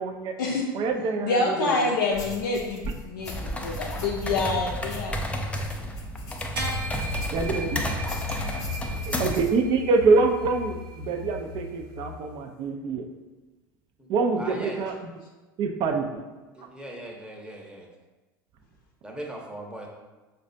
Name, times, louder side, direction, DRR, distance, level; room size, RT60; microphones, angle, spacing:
voice 1, 0.0-0.3 0.7-1.8 7.3-7.8 8.9-13.1 14.1-14.9 15.6-16.2, right 4 dB, 50° right, 5 dB, 0.4 m, -25 dB
voice 2, 1.2-5.6 8.1-8.7, left 3 dB, 75° left, -3 dB, 0.5 m, -28 dB
sound 1, 2.1-7.7 8.0-9.6, equal, 30° left, 0.8 m, -40 dB
sound 2, 3.2-9.5, equal, 10° left, 0.4 m, -32 dB
sound 3, 6.6-12.2, left 3 dB, 85° right, 0.7 m, -35 dB
voice 3, 14.4-14.9 16.5-17.9 19.0-19.9, right 1 dB, 10° right, 0 dB, 0.7 m, -39 dB
4.8 x 2.2 x 2.6 m, 1.2 s
hypercardioid pair, 80°, 11 cm